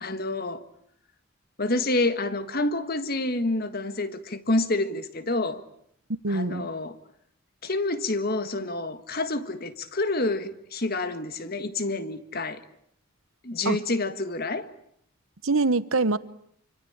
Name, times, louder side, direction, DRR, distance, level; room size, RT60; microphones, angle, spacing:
voice 1, 0.0-0.6 1.6-5.6 6.3-7.0 7.6-12.6 13.4-14.7, left 2 dB, 45° left, 1.7 m, -28 dB
voice 2, 6.1-6.7 13.6-13.8 15.4-16.2, right 3 dB, 70° right, 1.1 m, -24 dB
27.0 x 24.5 x 8.8 m
head